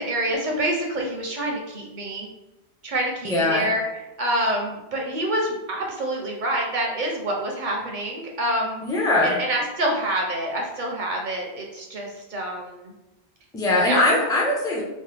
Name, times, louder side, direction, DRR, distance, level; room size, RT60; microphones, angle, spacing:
voice 1, 0.0-2.3 2.8-3.8 4.2-8.8 9.2-12.9 13.8-14.0, right 1 dB, 55° right, 0 dB, 0.6 m, -27 dB
voice 2, 3.2-3.7 8.8-9.4 13.5-14.8, left 2 dB, 5° left, -3 dB, 0.4 m, -21 dB
3.0 x 2.1 x 3.2 m, 0.98 s
omnidirectional pair, 1.1 m